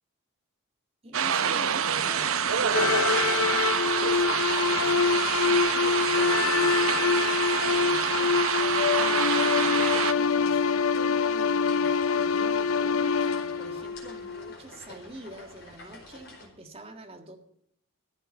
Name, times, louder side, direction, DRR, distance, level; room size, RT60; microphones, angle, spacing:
voice 1, 1.0-7.4 7.7-8.4 8.8-17.4, right 1 dB, 25° right, 5 dB, 1.7 m, -46 dB
sound 1, 1.1-10.1, right 7 dB, 75° right, 0.8 m, -27 dB
sound 2, 2.0-16.5, left 2 dB, 50° left, 4.7 m, -48 dB
sound 3, 2.7-14.5, left 5 dB, 75° left, 0.6 m, -25 dB
14.0 x 8.1 x 7.2 m, 0.70 s
head